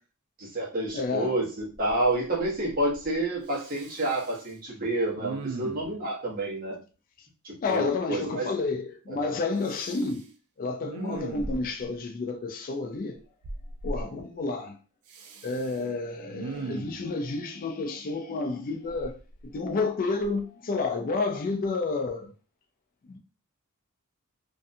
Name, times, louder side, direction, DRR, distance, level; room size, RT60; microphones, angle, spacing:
voice 1, 0.4-6.8 7.4-8.5 9.1-9.3, right 1 dB, 40° right, 1.0 m, -29 dB
voice 2, 0.9-1.4 7.6-10.3 10.6-13.2 13.8-14.8 15.4-19.1 19.4-22.3 23.1-23.2, left 3 dB, 40° left, 0.3 m, -30 dB
Respiratory sounds, 1.6-2.1 2.4-3.1 3.5-4.5 5.2-6.0 9.6-10.2 10.8-11.9 13.4-14.0 15.1-15.8 16.3-17.1 18.9-19.8 20.2-20.4, right 2 dB, 80° right, 0.4 m, -38 dB
2.6 x 2.2 x 2.6 m
head